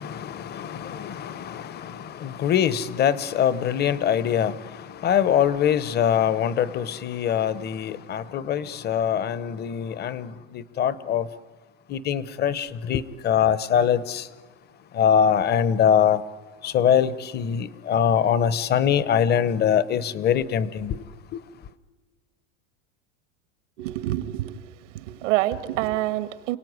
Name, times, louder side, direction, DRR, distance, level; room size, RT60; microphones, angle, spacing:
voice 1, 0.0-11.3 11.9-14.3 14.9-16.2 16.6-21.0, left 8 dB, 25° left, 1.0 m, -23 dB
voice 2, 23.8-26.6, right 15 dB, 75° right, 1.7 m, -27 dB
29.5 x 18.0 x 9.5 m
supercardioid pair, 145°, 36 cm